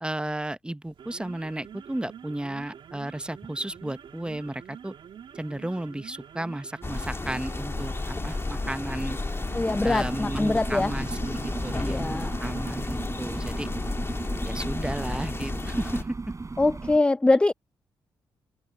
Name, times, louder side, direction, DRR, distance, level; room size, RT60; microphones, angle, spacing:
voice 1, 0.0-4.9 5.3-9.2 9.8-13.7 14.4-16.2, right 1 dB, 10° right, 1.0 m, -33 dB
sound 1, 0.8-12.8, right 8 dB, 60° right, 2.3 m, -46 dB
sound 2, 6.8-16.0, left 3 dB, 25° left, 1.9 m, -32 dB
voice 2, 9.5-10.9 11.7-12.3 16.6-17.5, left 2 dB, 10° left, 0.3 m, -23 dB
sound 3, 9.7-17.0, right 3 dB, 35° right, 4.8 m, -36 dB
hypercardioid pair, 40°, 9 cm